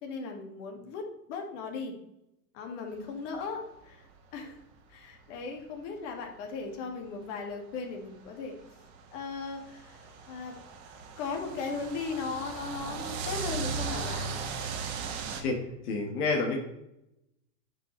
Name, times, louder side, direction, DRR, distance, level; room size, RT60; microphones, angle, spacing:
voice 1, 0.0-1.9 2.5-4.0 4.3-4.6 4.9-8.5 9.1-10.6 11.2-14.4, left 4 dB, 45° left, 3 dB, 2.0 m, -37 dB
sound 1, 4.4-4.5 5.1-5.2 6.2-6.3 7.8-15.4, right 5 dB, 40° right, 1.3 m, -37 dB
voice 2, 15.8-16.6, left 3 dB, 65° left, 1 dB, 1.6 m, -28 dB
9.7 x 5.5 x 3.1 m, 0.84 s
supercardioid pair, 155°, 50 cm